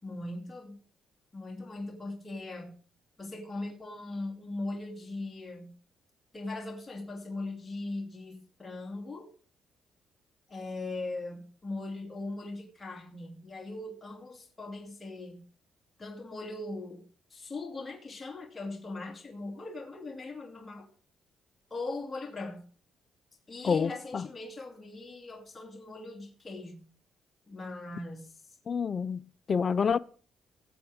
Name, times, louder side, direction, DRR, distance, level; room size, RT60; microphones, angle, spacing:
voice 1, 0.0-0.8 1.3-2.7 3.2-5.7 6.3-9.3 10.5-15.5 16.0-20.9 21.7-22.7 23.5-26.8 27.5-28.3, left 2 dB, 25° left, 2.5 m, -40 dB
voice 2, 23.6-24.2 28.7-30.0, left 6 dB, 45° left, 0.4 m, -28 dB
19.0 x 7.7 x 3.6 m
cardioid pair, 90°, 0 cm